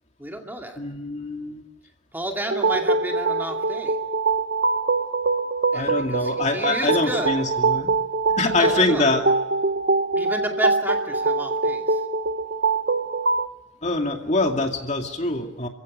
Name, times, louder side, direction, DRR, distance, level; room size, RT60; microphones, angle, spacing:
voice 1, 0.2-0.8 2.1-4.0 5.7-7.4 8.5-9.1 10.2-12.0, right 1 dB, 10° right, 2 dB, 2.4 m, -31 dB
voice 2, 0.8-1.6 5.7-7.9 8.4-9.2 13.8-15.7, left 2 dB, 35° left, 3 dB, 2.4 m, -24 dB
sound 1, 2.5-13.5, right 3 dB, 55° right, 0.9 m, -23 dB
28.5 x 16.0 x 9.4 m, 1.0 s
head